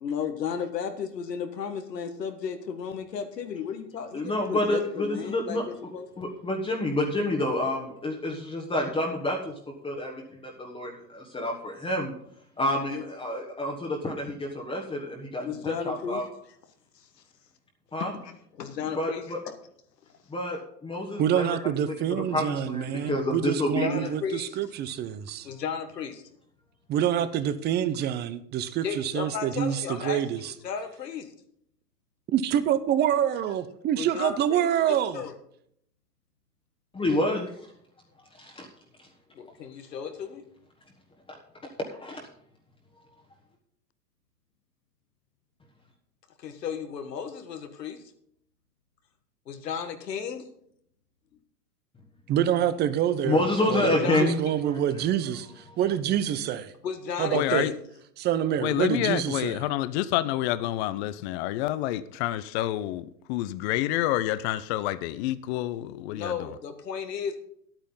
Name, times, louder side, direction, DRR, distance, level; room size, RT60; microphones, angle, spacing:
voice 1, 0.0-6.3 12.8-13.0 15.4-16.2 17.0-17.1 18.2-19.5 23.8-24.5 25.4-26.2 28.8-31.3 34.0-35.3 39.3-40.4 46.4-48.0 49.5-50.5 53.8-54.5 56.8-57.8 66.1-67.4, left 7 dB, 90° left, 1.6 m, -34 dB
voice 2, 4.1-5.6 6.2-9.5 9.8-12.1 12.6-16.2 17.9-18.1 19.0-19.4 20.3-21.6 21.8-21.9 22.3-24.1 36.9-37.5 38.4-38.7 41.9-42.3 53.2-54.4 54.7-54.8, left 1 dB, 10° left, 1.3 m, -28 dB
voice 3, 21.2-25.5 26.9-30.5 32.3-35.2 52.3-56.7 57.2-57.7 58.2-59.6, right 10 dB, 20° right, 0.6 m, -26 dB
voice 4, 57.3-57.7 58.6-66.3, left 14 dB, 45° left, 0.6 m, -28 dB
10.5 x 8.9 x 5.4 m
hypercardioid pair, 120°, 48 cm